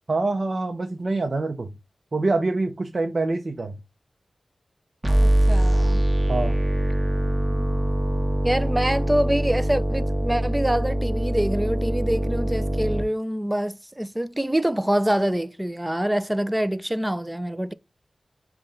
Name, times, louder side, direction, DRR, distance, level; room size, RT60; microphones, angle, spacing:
voice 1, 0.1-1.7 2.1-3.8 6.3-6.6, right 3 dB, 55° right, 0.6 m, -25 dB
sound 1, 5.0-13.0, right 1 dB, 30° right, 1.1 m, -23 dB
voice 2, 5.2-6.0 8.4-17.7, right 1 dB, 10° right, 0.3 m, -25 dB
5.5 x 2.2 x 3.6 m
wide cardioid pair, 65°, 0 cm